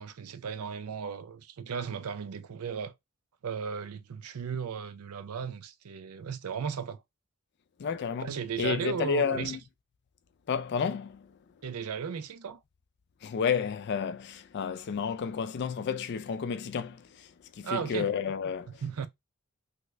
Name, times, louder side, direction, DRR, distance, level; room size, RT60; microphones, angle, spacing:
voice 1, 0.0-2.9 3.4-7.0 8.2-9.6 11.6-12.6 17.6-18.1 18.8-19.1, right 6 dB, 75° right, 0.5 m, -35 dB
voice 2, 7.8-8.3 8.6-9.6 10.5-11.2 13.2-17.0 17.6-18.7, left 6 dB, 50° left, 0.3 m, -31 dB
3.4 x 2.2 x 3.1 m
head